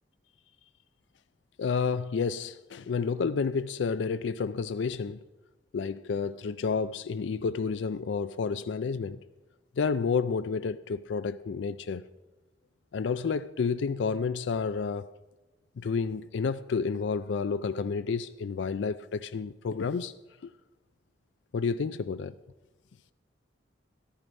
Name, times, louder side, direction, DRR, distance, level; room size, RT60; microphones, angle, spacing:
voice 1, 1.6-5.2 5.7-9.2 9.8-12.0 12.9-15.1 15.8-20.1 20.4-20.5 21.5-22.4, left 5 dB, 90° left, 0.4 m, -30 dB
14.0 x 12.5 x 5.2 m
head